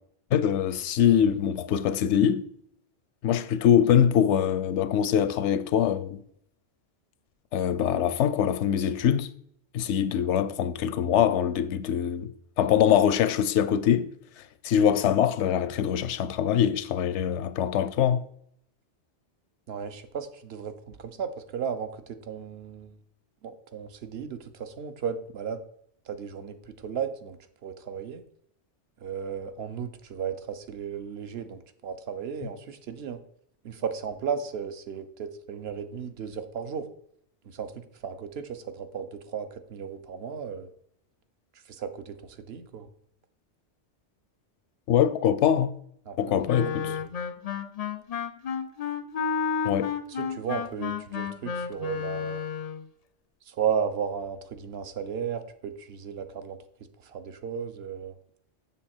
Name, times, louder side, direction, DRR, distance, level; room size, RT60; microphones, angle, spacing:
voice 1, 0.3-2.5 3.2-6.2 7.5-9.3 9.7-14.1 14.6-18.2 44.9-45.7 46.2-46.9 49.6-49.9, left 9 dB, 90° left, 0.9 m, -23 dB
voice 2, 19.7-22.9 23.4-25.6 26.1-28.2 29.0-33.2 33.6-36.9 37.4-40.7 41.7-42.9 46.1-47.0 50.1-52.4 53.5-56.6 57.0-58.2, right 7 dB, 65° right, 0.9 m, -35 dB
Wind instrument woodwind instrument, 46.5-52.8, left 7 dB, 55° left, 0.4 m, -31 dB
7.2 x 6.5 x 4.3 m
omnidirectional pair, 1.2 m